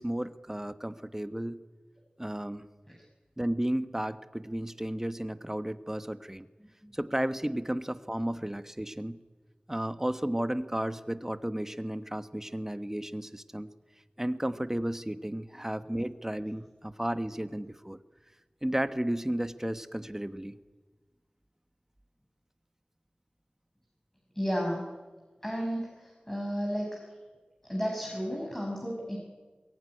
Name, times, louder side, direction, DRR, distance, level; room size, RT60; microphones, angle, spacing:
voice 1, 0.0-1.6 2.2-2.7 3.4-6.5 6.9-9.2 9.7-13.7 14.2-18.0 18.6-20.5, right 1 dB, 15° right, 11 dB, 1.2 m, -33 dB
voice 2, 24.3-24.8 25.4-27.0 27.6-29.2, equal, 10° left, -2 dB, 5.9 m, -32 dB
22.0 x 21.0 x 9.9 m, 1.3 s
wide cardioid pair, 55°, 3 cm